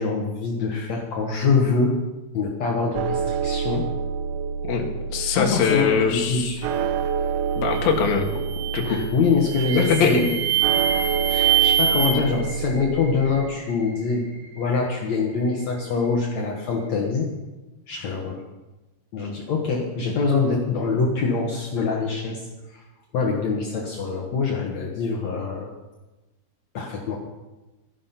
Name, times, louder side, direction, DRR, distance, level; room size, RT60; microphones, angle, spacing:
voice 1, 0.0-2.0 2.3-3.9 5.3-6.7 8.9-10.3 11.3-14.2 14.5-17.3 17.9-18.4 19.1-22.8 23.1-25.7 26.7-27.2, left 4 dB, 80° left, 0 dB, 1.5 m, -24 dB
sound 1, 3.0-13.5, right 6 dB, 85° right, 3.0 m, -28 dB
voice 2, 4.7-6.5 7.6-8.3 8.7-9.0 10.0-10.2, left 6 dB, 60° left, 1 dB, 3.1 m, -22 dB
sound 2, 7.7-8.0 8.5-9.0 9.5-12.1, right 10 dB, 70° right, 4.5 m, -23 dB
sound 3, 9.5-16.9, right 1 dB, 35° right, 7.2 m, -39 dB
14.0 x 11.0 x 5.8 m, 1.1 s
omnidirectional pair, 5.3 m